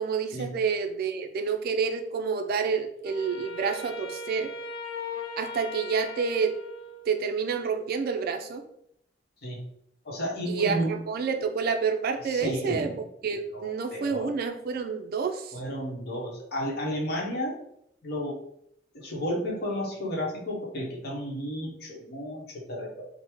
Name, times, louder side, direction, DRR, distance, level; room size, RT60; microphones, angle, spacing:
voice 1, 0.0-4.5 5.4-6.5 7.1-8.6 10.5-12.9 13.2-15.6, right 5 dB, 55° right, 6 dB, 0.3 m, -28 dB
Wind instrument woodwind instrument, 3.0-7.4, left 2 dB, 85° left, 0.4 m, -39 dB
voice 2, 10.0-11.0 12.2-14.3 15.5-17.6 18.0-18.4 18.9-23.1, equal, 60° left, -2 dB, 0.9 m, -32 dB
3.4 x 2.0 x 3.0 m, 0.74 s
head